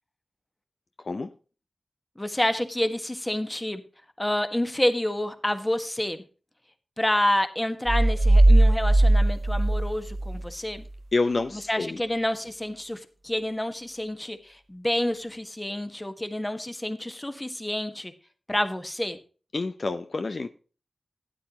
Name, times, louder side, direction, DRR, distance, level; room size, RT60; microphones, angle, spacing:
voice 1, 1.0-1.3 11.1-12.0 19.5-20.5, left 3 dB, 60° left, 0.7 m, -28 dB
voice 2, 2.2-3.8 4.2-6.2 7.0-10.8 11.7-18.1 18.5-19.2, left 1 dB, 15° left, 1.5 m, -28 dB
sound 1, 7.9-10.5, right 1 dB, 50° right, 1.0 m, -19 dB
12.5 x 9.6 x 3.0 m
cardioid pair, 50°, 0 cm